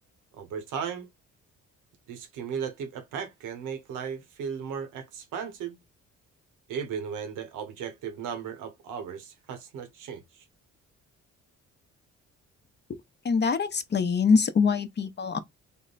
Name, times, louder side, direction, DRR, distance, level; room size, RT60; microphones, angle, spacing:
voice 1, 0.3-1.1 2.1-5.8 6.7-10.4, right 7 dB, 90° right, 1.0 m, -36 dB
voice 2, 13.2-15.4, left 5 dB, 35° left, 0.7 m, -24 dB
3.5 x 2.2 x 3.9 m
cardioid pair, 90°, 30 cm